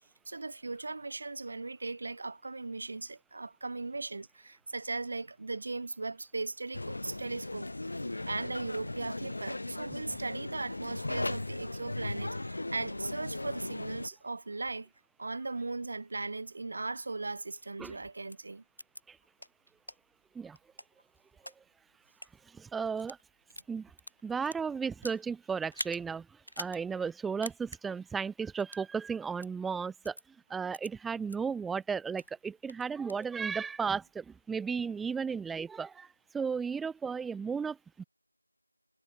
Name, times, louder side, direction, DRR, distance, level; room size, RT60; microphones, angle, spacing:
voice 1, 0.3-14.9 15.2-18.6, right 3 dB, 25° right, 2.9 m, -38 dB
sound 1, 6.7-14.1, left 2 dB, 35° left, 1.7 m, -37 dB
sound 2, 18.3-18.4 18.8-19.0 19.4-19.5 19.9-20.0 20.5-21.5 22.1-22.3 22.9-23.2 23.5-25.2 25.7-26.0 26.4-26.8 27.1-27.2 27.4-27.8 28.6-28.9 29.4-29.5 30.0-30.2 30.7-30.9 31.3-31.4 31.8-32.3 32.7-33.3, equal, 85° left, 4.6 m, -44 dB
voice 2, 22.5-23.2 23.7-23.9 24.2-26.3 26.6-30.2 30.5-36.1 36.3-38.0, right 6 dB, ahead, 0.4 m, -34 dB
figure-of-eight pair, 175°, 0 cm